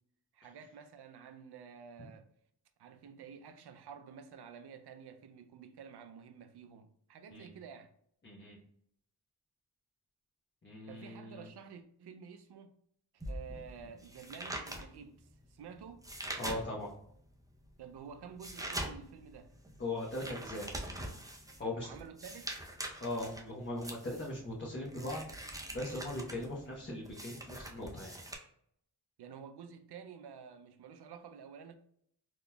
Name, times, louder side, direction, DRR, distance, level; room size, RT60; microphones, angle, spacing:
voice 1, 0.3-2.3 2.8-7.9 10.9-12.7 13.1-16.0 17.8-19.5 21.6-22.5 29.2-31.7, right 7 dB, 70° right, 0.5 m, -50 dB
voice 2, 8.2-8.6 10.6-11.5 13.5-13.6 16.4-16.9 19.8-20.7 21.6-21.9 23.0-25.2 25.7-28.2, left 1 dB, 30° left, 0.9 m, -39 dB
sound 1, 13.2-17.0 17.5-28.3, right 1 dB, 10° right, 0.6 m, -44 dB
3.7 x 3.0 x 2.3 m
wide cardioid pair, 75°, 41 cm